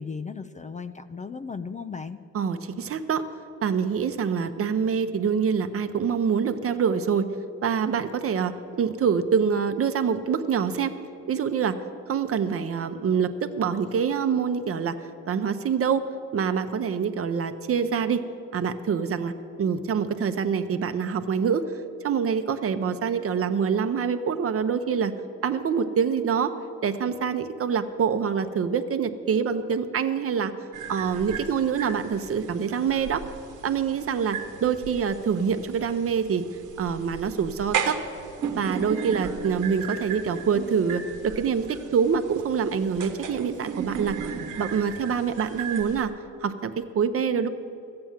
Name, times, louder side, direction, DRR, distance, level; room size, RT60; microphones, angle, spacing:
voice 1, 0.0-2.2, left 5 dB, 25° left, 11 dB, 0.4 m, -36 dB
voice 2, 2.3-3.2 3.6-7.3 7.6-10.9 11.3-11.8 12.1-15.0 15.3-18.2 18.5-19.3 19.6-21.6 22.0-25.1 25.4-26.5 26.8-30.5 30.9-33.2 33.6-36.4 36.8-38.0 38.6-46.1 46.4-47.5, right 6 dB, 50° right, 9 dB, 0.8 m, -25 dB
sound 1, 30.7-46.1, right 7 dB, 85° right, 1.1 m, -36 dB
13.0 x 8.8 x 7.3 m, 2.8 s
cardioid pair, 90°, 30 cm